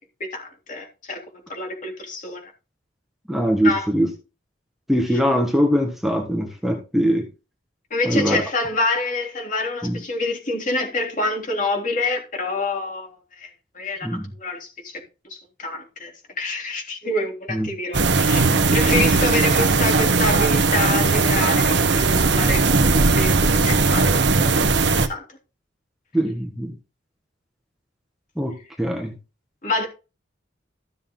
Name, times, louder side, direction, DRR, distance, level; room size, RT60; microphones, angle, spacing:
voice 1, 0.3-1.2 1.5-2.5 3.6-3.9 5.1-5.2 7.9-14.1 14.3-15.0 15.3-16.1 16.4-22.6 23.2-25.2 29.6-29.9, left 2 dB, 40° left, 3.4 m, -27 dB
voice 2, 3.3-4.1 4.9-7.3 8.1-8.4 9.8-10.0 14.0-14.3 17.5-17.7 26.1-26.7 28.4-29.1, equal, ahead, 1.6 m, -22 dB
sound 1, 17.9-25.1, right 3 dB, 65° right, 1.2 m, -18 dB
14.0 x 6.9 x 3.8 m
head